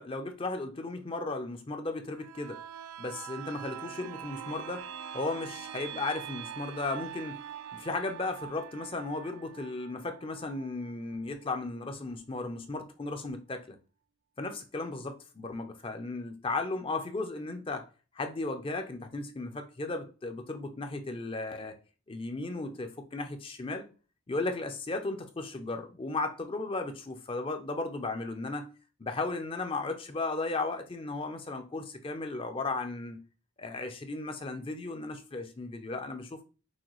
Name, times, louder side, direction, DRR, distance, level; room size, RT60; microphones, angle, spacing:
voice 1, 0.0-2.6 3.0-4.9 5.1-7.4 7.7-13.8 14.4-17.9 18.1-21.7 22.1-23.9 24.3-28.7 29.0-33.2 33.6-36.4, left 3 dB, 25° left, 0.5 m, -35 dB
sound 1, 2.1-11.7 12.1-12.2, right 9 dB, 65° right, 0.3 m, -44 dB
6.1 x 2.3 x 3.0 m
head